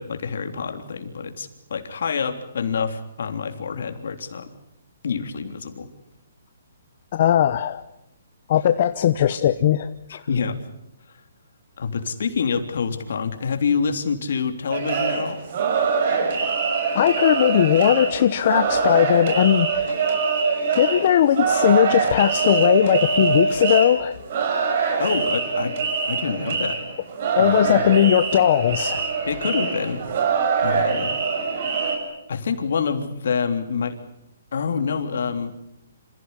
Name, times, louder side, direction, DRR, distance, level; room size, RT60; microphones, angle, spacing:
voice 1, 0.0-4.5 5.0-5.9 10.1-10.6 11.8-15.4 25.0-26.8 27.4-27.8 29.2-30.0 30.6-31.2 32.3-34.0 34.5-35.5, left 5 dB, 65° left, 6 dB, 3.3 m, -27 dB
voice 2, 7.1-7.8 8.5-10.2 16.9-20.0 20.7-24.2 27.3-29.0, left 10 dB, 45° left, 10 dB, 0.9 m, -19 dB
sound 1, 14.7-32.0, right 5 dB, 45° right, 6.6 m, -23 dB
27.5 x 16.0 x 9.9 m, 0.85 s
hypercardioid pair, 160°, 0 cm